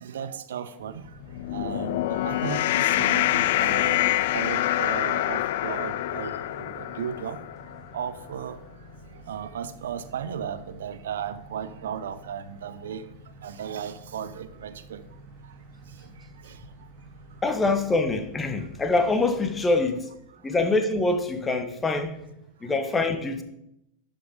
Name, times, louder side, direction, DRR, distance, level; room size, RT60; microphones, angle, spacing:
voice 1, 0.0-1.0 1.5-4.0 4.3-7.4 7.9-8.6 9.3-13.0 13.4-15.0, right 8 dB, 60° right, 0.5 m, -35 dB
sound 1, 0.8-19.8, right 1 dB, 30° right, 2.6 m, -49 dB
sound 2, 1.2-7.8, left 14 dB, 55° left, 0.4 m, -26 dB
voice 2, 17.4-20.1 20.4-22.1 22.6-23.4, left 3 dB, 15° left, 1.1 m, -24 dB
11.5 x 5.4 x 5.0 m
figure-of-eight pair, 90°, 0 cm